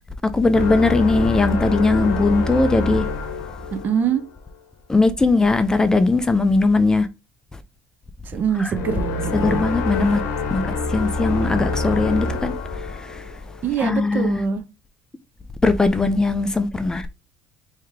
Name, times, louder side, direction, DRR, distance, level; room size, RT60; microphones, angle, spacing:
voice 1, 0.3-3.0 4.9-7.1 8.6-8.7 9.3-10.2 10.5-10.6 10.9-12.5 12.9-13.2 13.8-14.4 15.6-17.1, left 3 dB, 15° left, 0.5 m, -19 dB
sound 1, 0.5-4.3 8.7-13.6, left 3 dB, 70° left, 0.8 m, -26 dB
voice 2, 3.7-4.2 8.3-9.7 13.6-14.6, right 7 dB, 50° right, 0.7 m, -24 dB
3.2 x 2.8 x 3.5 m
supercardioid pair, 90°, 4 cm